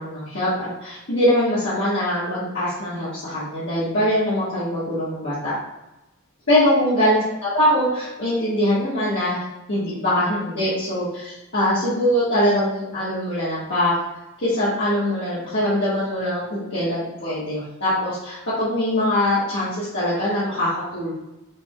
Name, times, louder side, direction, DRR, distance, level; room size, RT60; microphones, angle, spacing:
voice 1, 0.0-5.5 6.5-9.4 9.7-13.9 14.4-21.1, left 1 dB, 60° left, -11 dB, 1.5 m, -22 dB
6.1 x 3.5 x 2.2 m, 0.98 s
head